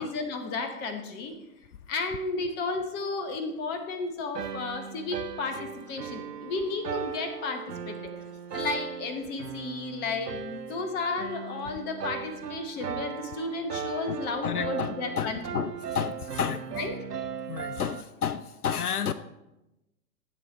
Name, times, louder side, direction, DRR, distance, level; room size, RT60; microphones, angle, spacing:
voice 1, 0.0-1.3 1.9-8.1 8.5-15.6 16.8-16.9, left 3 dB, 20° left, 6 dB, 1.0 m, -33 dB
sound 1, 4.4-18.0, right 8 dB, 80° right, 0.7 m, -38 dB
voice 2, 14.4-16.6 17.5-19.1, left 8 dB, 70° left, 13 dB, 0.6 m, -31 dB
15.0 x 7.3 x 3.1 m, 0.95 s
figure-of-eight pair, 110°, 47 cm